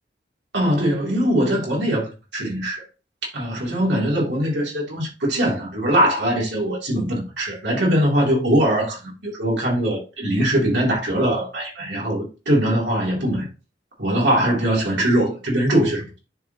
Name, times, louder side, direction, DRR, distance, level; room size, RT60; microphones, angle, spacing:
voice 1, 0.5-2.8 3.3-13.5 14.0-16.2, right 1 dB, 75° right, 2.8 m, -21 dB
9.8 x 4.1 x 2.8 m
head